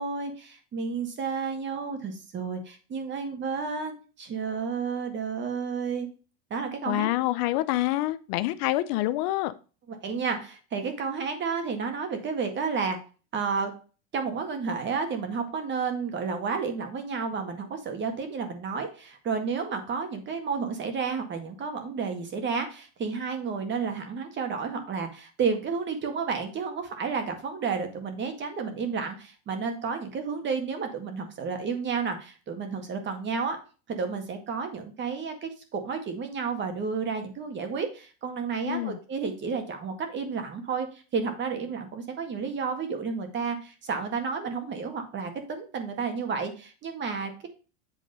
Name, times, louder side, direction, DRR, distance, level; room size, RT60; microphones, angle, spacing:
voice 1, 0.0-6.1 6.5-7.1 9.9-13.0 13.3-13.7 14.1-33.6 33.9-47.5, right 5 dB, 35° right, 1.8 m, -31 dB
voice 2, 6.9-9.5 38.7-39.0, left 16 dB, 60° left, 0.6 m, -27 dB
8.2 x 3.7 x 5.3 m
supercardioid pair, 130°, 34 cm